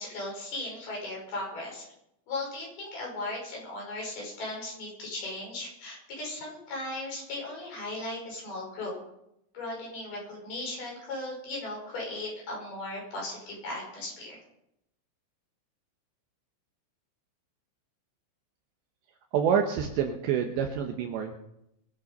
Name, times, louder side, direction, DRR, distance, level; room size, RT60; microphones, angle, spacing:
voice 1, 0.0-1.9 2.3-8.9 9.5-14.4, left 2 dB, 50° left, -2 dB, 7.5 m, -37 dB
voice 2, 19.3-21.3, right 7 dB, 75° right, 4 dB, 2.8 m, -27 dB
23.0 x 8.8 x 5.5 m, 0.80 s
omnidirectional pair, 6.0 m